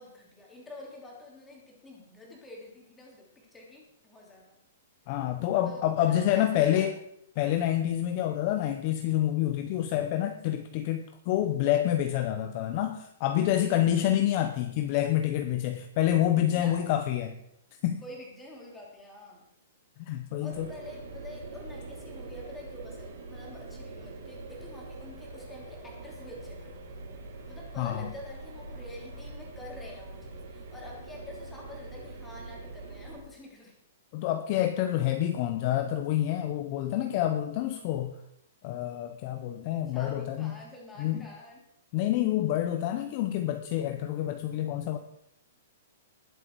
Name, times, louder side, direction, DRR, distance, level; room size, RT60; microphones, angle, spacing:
voice 1, 0.0-4.6 5.6-6.9 16.5-17.2 18.0-19.4 20.4-26.8 27.5-33.8 39.9-41.6, left 1 dB, 5° left, -2 dB, 3.1 m, -47 dB
voice 2, 5.1-7.0 7.4-17.3 17.8-18.0 20.0-20.7 27.8-28.1 34.1-38.1 38.6-40.5 41.0-41.3 41.9-45.0, left 12 dB, 30° left, 7 dB, 0.8 m, -27 dB
sound 1, 20.5-33.2, right 2 dB, 70° right, 4.2 m, -44 dB
20.0 x 7.9 x 4.7 m, 0.75 s
hypercardioid pair, 170°, 0 cm